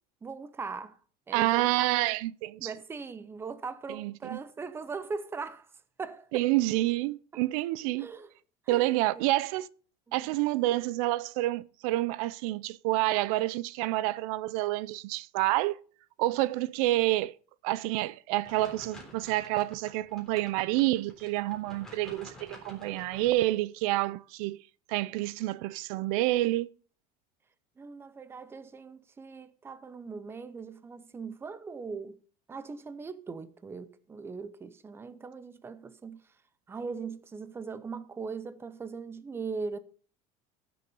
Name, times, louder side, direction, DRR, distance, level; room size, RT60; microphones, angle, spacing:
voice 1, 0.2-1.0 1.3-1.9 2.6-5.7 6.0-6.4 7.3-7.4 8.0-8.3 8.7-9.3 10.1-10.3 27.8-32.2 32.5-36.2 36.7-39.8, right 4 dB, 15° right, 0.7 m, -40 dB
voice 2, 1.3-2.7 3.9-4.4 6.3-8.1 8.7-9.7 10.1-15.8 16.2-17.3 17.6-24.6 24.9-26.7, right 17 dB, 75° right, 0.6 m, -28 dB
sound 1, 18.4-23.4, left 1 dB, 5° left, 3.6 m, -50 dB
15.0 x 7.0 x 5.4 m
cardioid pair, 160°, 18 cm